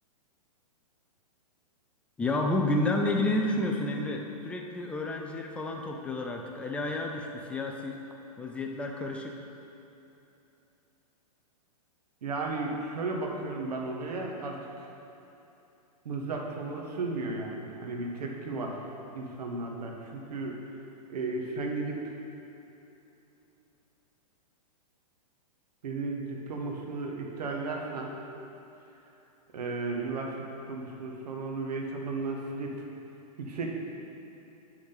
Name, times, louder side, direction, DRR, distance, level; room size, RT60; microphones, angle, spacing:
voice 1, 2.2-8.0 8.4-9.4, left 2 dB, 5° left, 2 dB, 0.4 m, -30 dB
voice 2, 12.2-14.9 16.0-18.8 19.1-20.5 21.1-22.2 25.8-28.1 29.5-30.3 30.7-32.8 33.4-33.7, right 3 dB, 80° right, 0 dB, 1.4 m, -34 dB
8.4 x 6.2 x 4.0 m, 3.0 s
hypercardioid pair, 145°, 20 cm